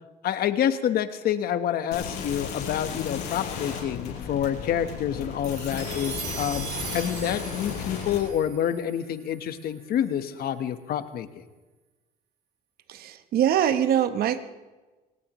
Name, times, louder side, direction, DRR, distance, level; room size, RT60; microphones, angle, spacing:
voice 1, 0.2-6.7 6.9-11.3, left 10 dB, 65° left, 10 dB, 1.1 m, -27 dB
sound 1, 1.9-8.2, left 7 dB, 90° left, 5.1 m, -34 dB
sound 2, 5.4-10.0, right 7 dB, 80° right, 3.2 m, -40 dB
voice 2, 12.9-14.4, right 10 dB, 65° right, 10 dB, 1.0 m, -23 dB
24.0 x 18.5 x 3.1 m, 1.2 s
cardioid pair, 110°, 17 cm